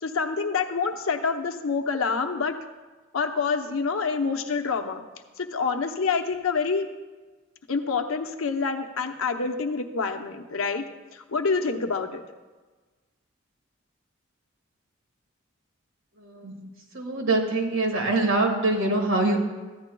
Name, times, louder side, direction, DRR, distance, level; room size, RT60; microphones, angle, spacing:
voice 1, 0.0-2.6 3.1-5.0 5.4-6.9 7.7-10.9 11.1-12.2, left 5 dB, 85° left, 6 dB, 0.8 m, -27 dB
voice 2, 16.2-16.6 16.9-19.4, right 2 dB, 70° right, 1 dB, 1.8 m, -24 dB
14.0 x 10.0 x 2.3 m, 1.3 s
head